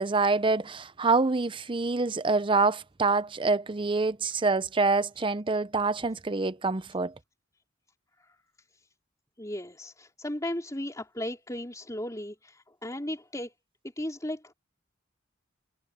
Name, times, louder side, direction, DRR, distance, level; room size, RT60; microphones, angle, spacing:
voice 1, 0.0-7.1, right 3 dB, 25° right, 0.6 m, -26 dB
voice 2, 9.4-13.5 14.0-14.5, left 1 dB, 15° left, 4.0 m, -36 dB
head